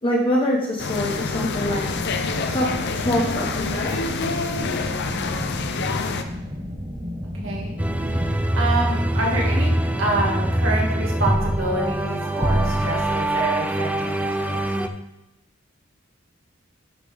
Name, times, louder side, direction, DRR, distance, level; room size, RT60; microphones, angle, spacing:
voice 1, 0.0-1.8 2.5-2.7 2.9-3.9, equal, 25° left, -3 dB, 1.1 m, -24 dB
sound 1, 0.8-6.2, left 4 dB, 55° left, 0.7 m, -27 dB
sound 2, 1.1-8.3, equal, 25° right, 1.4 m, -33 dB
voice 2, 7.4-7.8 8.1-14.6, right 2 dB, 70° right, -3 dB, 2.1 m, -27 dB
sound 3, 7.8-14.9, right 1 dB, 5° right, 0.4 m, -23 dB
11.0 x 5.9 x 3.5 m, 0.93 s
head